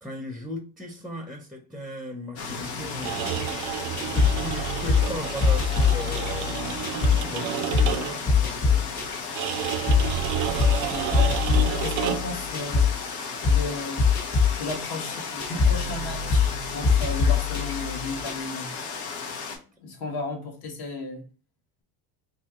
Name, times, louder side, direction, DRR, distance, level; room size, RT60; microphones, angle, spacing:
voice 1, 0.0-3.7 4.1-9.7, left 1 dB, ahead, 0.6 m, -38 dB
sound 1, 2.4-19.6, left 5 dB, 85° left, 1.1 m, -35 dB
sound 2, 3.0-8.3 9.4-12.4, right 11 dB, 75° right, 0.5 m, -31 dB
sound 3, 3.3-7.3 7.7-8.0 8.3-13.0 13.4-13.7 14.0-18.3, left 5 dB, 40° left, 1.7 m, -23 dB
voice 2, 10.9-11.4 11.8-12.9 13.4-14.0 14.6-18.7 19.8-21.3, left 2 dB, 60° left, 1.3 m, -34 dB
2.8 x 2.7 x 3.5 m
supercardioid pair, 95°, 42 cm